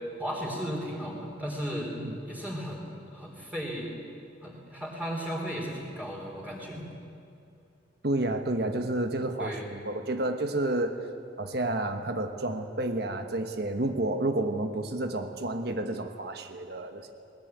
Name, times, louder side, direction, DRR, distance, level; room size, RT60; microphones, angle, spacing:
voice 1, 0.2-1.9 2.2-3.9 4.4-6.9 9.4-9.7, equal, 10° right, -3 dB, 3.7 m, -35 dB
voice 2, 8.0-11.0 11.4-17.1, right 2 dB, 60° right, 6 dB, 1.2 m, -30 dB
20.5 x 20.0 x 9.2 m, 2.6 s
head